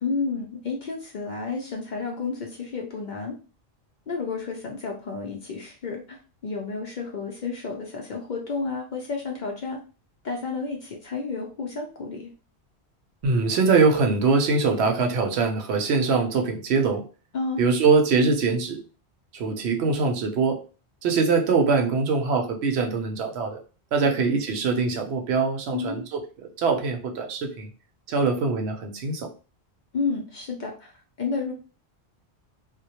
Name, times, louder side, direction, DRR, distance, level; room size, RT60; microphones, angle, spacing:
voice 1, 0.0-3.4 4.1-9.8 10.2-12.3 17.3-17.6 24.0-24.1 25.7-26.1 29.9-31.5, left 4 dB, 55° left, 0 dB, 0.5 m, -31 dB
voice 2, 13.2-17.0 17.6-18.8 19.3-20.6 21.0-23.6 23.9-27.7 28.1-29.3, right 4 dB, 75° right, 4 dB, 0.8 m, -23 dB
2.1 x 2.1 x 2.8 m, 0.35 s
omnidirectional pair, 1.1 m